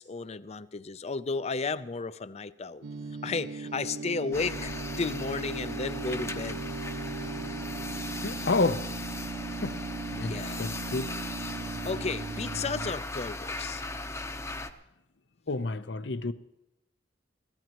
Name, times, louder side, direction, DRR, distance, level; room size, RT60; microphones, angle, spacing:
voice 1, 0.0-2.9 3.2-4.7 5.0-6.7 10.2-10.7 11.8-13.8, left 4 dB, 35° left, 0.6 m, -33 dB
sound 1, 2.8-12.9, right 4 dB, 70° right, 0.5 m, -38 dB
sound 2, 4.3-14.7, left 2 dB, 15° left, 0.8 m, -38 dB
voice 2, 8.2-8.9 9.6-9.8 10.1-11.1 15.5-16.3, left 3 dB, 75° left, 0.7 m, -29 dB
23.0 x 16.0 x 3.0 m
head